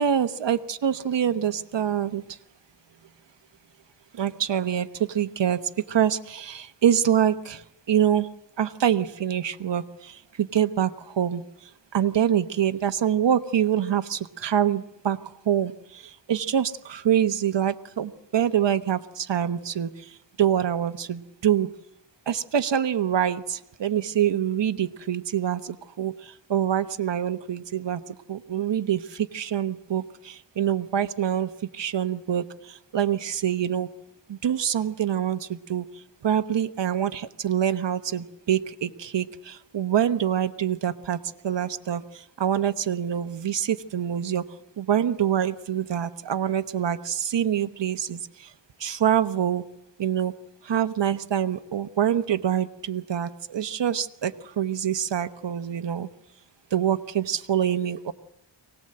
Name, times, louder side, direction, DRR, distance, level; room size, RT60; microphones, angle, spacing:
voice 1, 0.0-2.2 4.1-5.6 5.9-7.6 7.9-8.3 8.6-11.4 11.9-15.2 15.5-19.9 20.4-21.7 22.3-26.2 26.5-28.0 28.3-33.9 34.3-35.8 36.2-41.2 41.4-42.0 42.4-44.4 44.8-48.2 48.8-49.6 50.0-50.3 50.6-56.1 56.7-58.1, right 9 dB, 65° right, 10 dB, 1.1 m, -25 dB
24.0 x 18.5 x 7.8 m, 0.82 s
wide cardioid pair, 90°, 47 cm